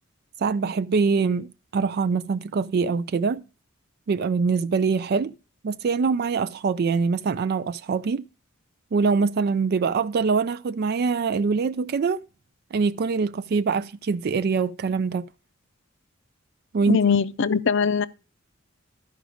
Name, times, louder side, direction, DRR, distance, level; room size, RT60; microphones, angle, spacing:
voice 1, 0.4-3.4 4.1-5.3 5.6-8.3 8.9-12.2 12.7-15.2 16.7-17.0, right 5 dB, 50° right, 0.4 m, -24 dB
voice 2, 16.9-18.1, left 6 dB, 60° left, 0.6 m, -21 dB
12.5 x 5.1 x 4.9 m
head